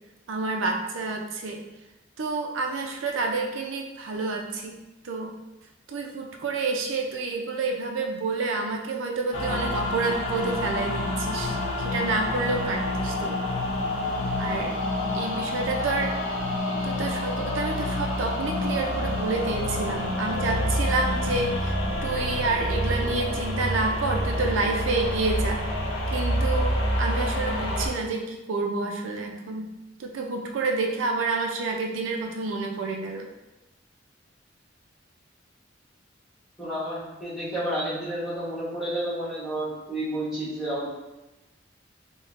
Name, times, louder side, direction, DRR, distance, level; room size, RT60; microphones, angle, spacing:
voice 1, 0.3-1.6 2.2-4.8 5.0-5.3 5.9-13.4 14.4-14.7 15.1-16.1 16.8-21.7 22.0-25.7 26.1-29.7 30.0-33.3, right 3 dB, 85° right, 2 dB, 0.4 m, -29 dB
sound 1, 9.3-27.9, left 1 dB, 85° left, 0.7 m, -28 dB
voice 2, 36.6-40.9, right 1 dB, ahead, -11 dB, 1.0 m, -30 dB
4.6 x 2.1 x 2.4 m, 1.0 s
head